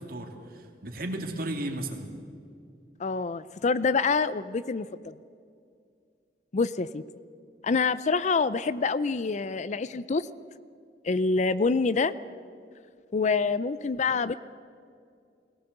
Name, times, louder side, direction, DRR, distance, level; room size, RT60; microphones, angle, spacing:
voice 1, 0.0-2.1, right 1 dB, 55° right, 4 dB, 2.6 m, -34 dB
voice 2, 3.0-4.9 6.5-7.0 7.6-10.3 11.0-12.1 13.1-14.3, left 4 dB, 40° left, 16 dB, 0.5 m, -26 dB
21.0 x 17.0 x 8.0 m, 2.4 s
head